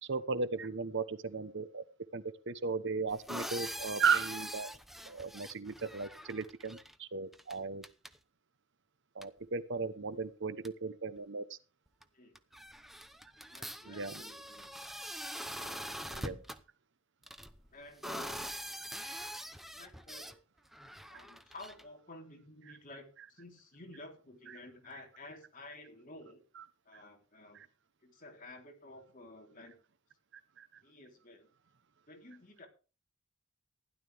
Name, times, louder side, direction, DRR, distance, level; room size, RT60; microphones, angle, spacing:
voice 1, 0.0-1.8 2.1-4.7 5.0-7.8 9.1-11.6 13.8-14.2 16.1-16.4 26.6-26.7 30.6-30.7, right 5 dB, 60° right, 13 dB, 1.0 m, -36 dB
sound 1, 3.1-6.9 7.3-7.6 7.8-8.2 9.2-9.3 10.2-10.3 10.6-10.7 12.0-12.1 12.3-16.6 17.2-20.3 20.7-21.8, equal, ahead, 0.8 m, -44 dB
voice 2, 13.5-14.7 15.6-16.3 17.7-18.8 19.7-20.4 21.1-26.4 26.9-27.6 28.0-29.8 30.8-31.5 32.1-32.7, left 2 dB, 40° left, 2 dB, 3.6 m, -52 dB
16.0 x 11.5 x 3.5 m, 0.34 s
head